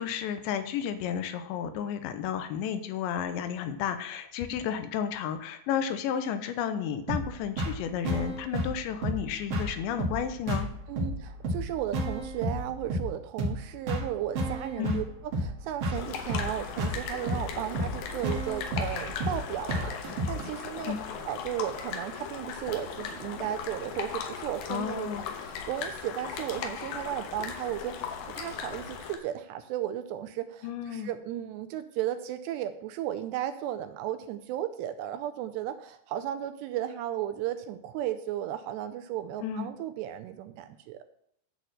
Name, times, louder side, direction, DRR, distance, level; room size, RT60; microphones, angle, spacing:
voice 1, 0.0-10.7 14.8-15.0 20.9-21.0 24.7-25.2 30.6-31.1 39.4-39.7, left 8 dB, 90° left, 9 dB, 3.0 m, -32 dB
sound 1, 7.1-20.5, right 1 dB, 65° right, 1.5 m, -32 dB
voice 2, 10.9-15.1 15.4-21.0 21.3-25.1 25.4-41.0, right 11 dB, 80° right, 9 dB, 2.6 m, -35 dB
sound 2, 15.9-29.2, left 6 dB, 70° left, 2.4 m, -38 dB
10.5 x 4.2 x 7.8 m, 0.71 s
omnidirectional pair, 5.2 m